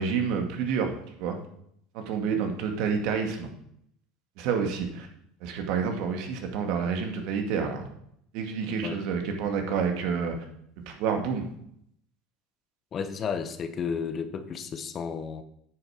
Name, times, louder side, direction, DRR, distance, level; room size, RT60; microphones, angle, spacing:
voice 1, 0.0-1.4 1.9-3.5 4.4-5.1 5.4-7.9 8.3-10.4 10.8-11.5, right 6 dB, 65° right, 4 dB, 2.1 m, -29 dB
voice 2, 12.9-15.4, left 6 dB, 40° left, 10 dB, 1.0 m, -32 dB
9.3 x 7.1 x 5.1 m, 0.71 s
supercardioid pair, 95°, 0 cm